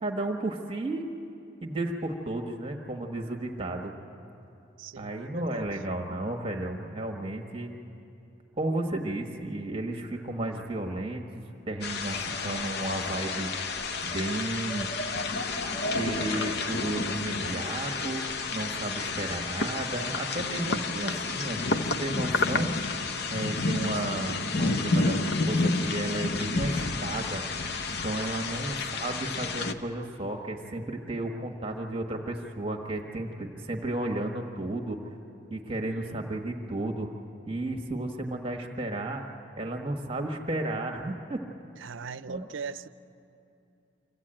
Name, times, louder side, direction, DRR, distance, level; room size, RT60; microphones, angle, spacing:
voice 1, 0.0-1.0 1.6-3.9 4.9-7.7 8.6-13.5 14.0-14.9 15.9-18.2 18.5-22.7 23.3-27.4 27.9-35.0 35.5-37.1 37.5-39.2 39.6-41.4 42.3-42.5, right 2 dB, 30° right, 2 dB, 1.3 m, -33 dB
voice 2, 4.8-5.7 35.8-36.3 41.8-42.9, right 5 dB, 85° right, 15 dB, 0.5 m, -40 dB
sound 1, 11.8-29.7, left 3 dB, 55° left, 0.8 m, -30 dB
Laughter / Crowd, 11.9-18.3, equal, 80° left, 1.5 m, -40 dB
25.5 x 15.0 x 8.8 m, 2.7 s
head